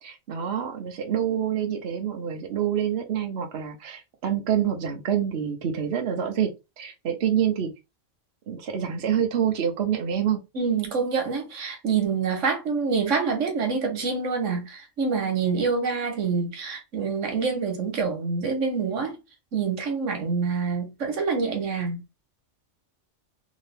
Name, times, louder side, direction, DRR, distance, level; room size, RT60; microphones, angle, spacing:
voice 1, 0.0-7.7 8.5-10.4, right 9 dB, 65° right, 1.0 m, -27 dB
voice 2, 10.5-19.2 19.5-22.0, right 5 dB, 90° right, 1.5 m, -26 dB
3.7 x 2.7 x 3.4 m
omnidirectional pair, 1.2 m